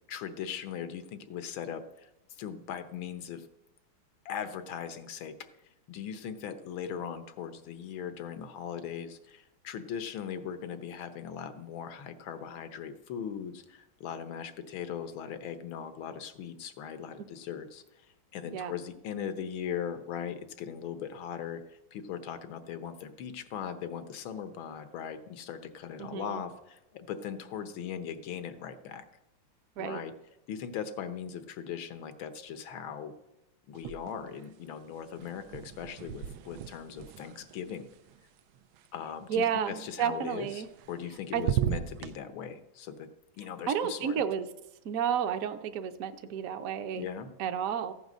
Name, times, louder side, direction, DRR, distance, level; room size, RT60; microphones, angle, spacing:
voice 1, 0.0-3.5 4.3-18.1 18.3-29.0 29.8-30.1 30.5-33.1 33.7-37.9 38.9-43.1 43.4-44.2 46.9-47.3, left 8 dB, 90° left, 11 dB, 1.7 m, -39 dB
voice 2, 26.0-26.4 29.8-30.0 39.3-40.7 41.3-41.4 43.7-44.5 44.8-47.1 47.4-47.9, right 8 dB, 60° right, 8 dB, 1.0 m, -31 dB
sound 1, 33.7-34.5 34.7-38.8 40.5-41.1 41.3-42.1, right 10 dB, 90° right, 1.4 m, -36 dB
14.5 x 8.0 x 6.2 m, 0.93 s
omnidirectional pair, 2.1 m